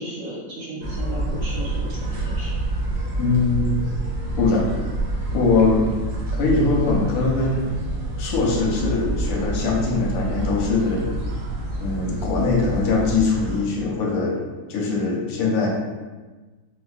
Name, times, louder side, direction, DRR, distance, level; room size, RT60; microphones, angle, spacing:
voice 1, 0.0-2.5, right 1 dB, 55° right, -7 dB, 1.0 m, -34 dB
sound 1, 0.8-13.6, right 1 dB, 85° right, 1.5 m, -27 dB
voice 2, 3.2-3.7 4.4-4.7 5.3-5.9 6.3-7.7 8.2-11.1 11.8-14.4 14.7-15.7, left 3 dB, 90° left, -2 dB, 1.4 m, -21 dB
4.4 x 2.2 x 2.4 m, 1.3 s
omnidirectional pair, 2.0 m